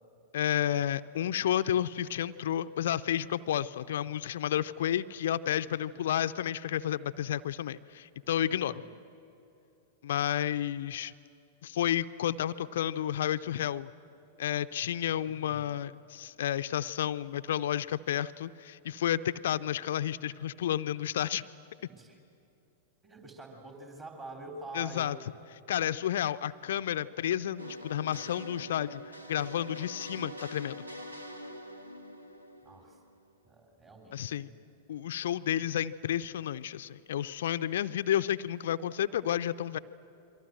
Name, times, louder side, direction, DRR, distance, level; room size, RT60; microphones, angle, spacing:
voice 1, 0.3-8.7 10.0-11.1 11.6-13.9 14.4-21.4 24.7-25.2 25.7-29.0 29.3-30.8 34.1-34.5 34.9-39.8, left 11 dB, 60° left, 13 dB, 0.6 m, -31 dB
voice 2, 5.7-6.1 8.3-8.9 15.2-15.7 21.9-22.2 23.0-25.2 32.6-33.0 33.4-34.6, right 2 dB, 25° right, 2 dB, 3.6 m, -47 dB
sound 1, 27.6-33.3, equal, 85° right, 1.9 m, -45 dB
28.5 x 23.5 x 7.7 m, 2.7 s
figure-of-eight pair, 95°, 0 cm